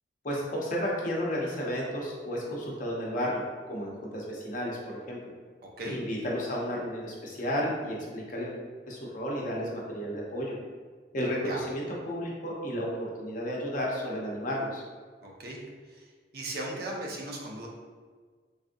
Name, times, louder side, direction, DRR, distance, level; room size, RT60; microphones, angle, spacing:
voice 1, 0.2-5.2 5.8-8.6 8.9-10.5 11.1-14.8, equal, 50° left, -3 dB, 0.6 m, -32 dB
voice 2, 5.6-6.0 11.5-11.6 15.2-15.6 15.9-16.0 16.3-17.7, right 1 dB, 60° right, -1 dB, 0.6 m, -37 dB
3.4 x 2.5 x 2.6 m, 1.5 s
head